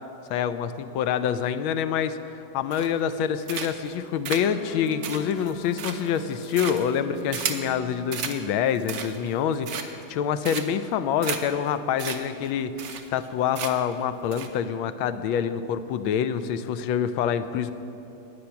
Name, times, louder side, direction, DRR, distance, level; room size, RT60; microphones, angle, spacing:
voice 1, 0.3-17.7, left 8 dB, 85° left, 11 dB, 1.4 m, -26 dB
sound 1, 2.7-3.1 3.5-3.9 4.2-7.7 8.1-8.4 8.7-9.3 9.6-10.1 10.4-10.9 11.2-11.4 11.7-11.8 12.0-12.2 12.4-12.5 12.8-13.3 13.5-13.9 14.3-14.5, right 7 dB, 55° right, 1.3 m, -33 dB
sound 2, 4.5-8.4, left 3 dB, 45° left, 1.9 m, -42 dB
20.0 x 8.1 x 5.8 m, 2.8 s
omnidirectional pair, 2.2 m